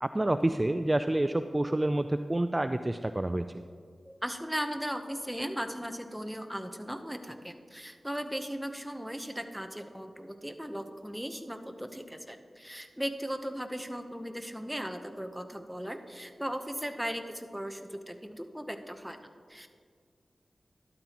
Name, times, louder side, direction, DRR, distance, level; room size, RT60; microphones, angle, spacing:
voice 1, 0.0-3.6, right 1 dB, 25° right, 9 dB, 0.3 m, -28 dB
voice 2, 4.1-19.2 19.5-19.7, equal, 5° right, 6 dB, 0.9 m, -37 dB
13.0 x 12.0 x 3.0 m, 2.1 s
cardioid pair, 55°, 0 cm